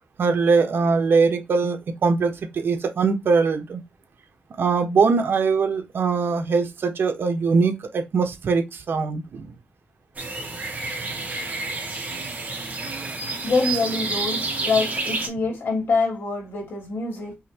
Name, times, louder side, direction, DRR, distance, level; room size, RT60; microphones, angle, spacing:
voice 1, 0.2-3.8 4.6-9.5, right 4 dB, 70° right, 1.1 m, -22 dB
sound 1, 10.1-15.3, right 3 dB, 40° right, 1.7 m, -29 dB
voice 2, 13.4-17.3, left 4 dB, 70° left, 2.8 m, -25 dB
5.6 x 3.1 x 2.8 m
wide cardioid pair, 125°, 4 cm